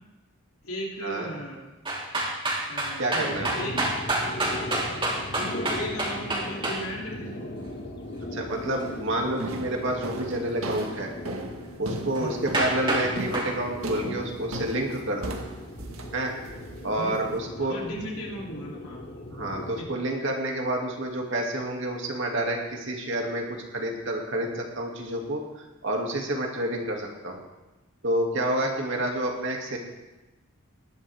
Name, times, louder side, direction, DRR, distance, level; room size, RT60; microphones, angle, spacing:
voice 1, 0.6-1.7 2.7-3.7 5.3-7.5 12.2-12.4 17.0-17.2 17.6-19.3 19.8-20.0 28.6-29.1, equal, 85° left, -3 dB, 3.2 m, -37 dB
sound 1, 1.9-6.8 12.2-12.3 12.5-13.1 13.3-13.5, right 2 dB, 25° right, 2.9 m, -27 dB
voice 2, 3.0-3.5 8.3-11.1 11.8-15.4 16.1-16.3 16.8-17.8 19.3-27.4 28.0-29.8, right 1 dB, 60° right, 0 dB, 2.5 m, -29 dB
sound 2, 3.3-19.8, left 1 dB, 50° left, 1.7 m, -39 dB
sound 3, 8.6-8.9 9.4-17.4, right 2 dB, 80° right, 1.6 m, -37 dB
19.5 x 11.5 x 3.6 m, 1.1 s
head